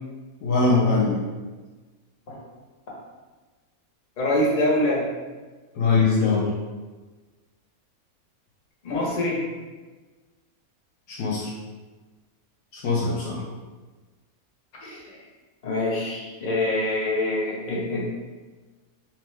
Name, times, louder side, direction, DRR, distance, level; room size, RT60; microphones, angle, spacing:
voice 1, 0.4-1.2 5.7-6.5 11.1-11.5 12.7-13.5, left 4 dB, 70° left, -4 dB, 0.9 m, -22 dB
voice 2, 4.2-5.1 8.8-9.4 14.8-15.2 15.6-18.1, left 1 dB, 40° left, -4 dB, 0.7 m, -25 dB
2.8 x 2.2 x 3.2 m, 1.3 s
omnidirectional pair, 1.6 m